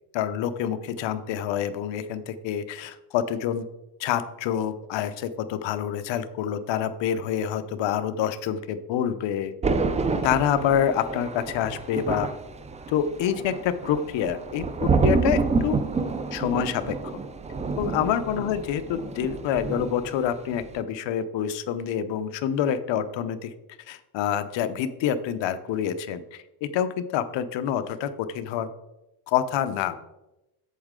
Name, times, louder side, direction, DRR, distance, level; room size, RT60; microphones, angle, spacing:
voice 1, 0.1-3.6 4.0-9.5 10.2-12.3 12.9-15.8 16.3-17.1 17.8-23.5 23.9-28.7 29.3-30.0, left 9 dB, 65° left, 11 dB, 0.8 m, -27 dB
Thunder, 9.6-20.2 20.5-20.8, right 4 dB, 15° right, 0.3 m, -28 dB
8.4 x 7.3 x 3.7 m, 0.94 s
cardioid pair, 130°, 49 cm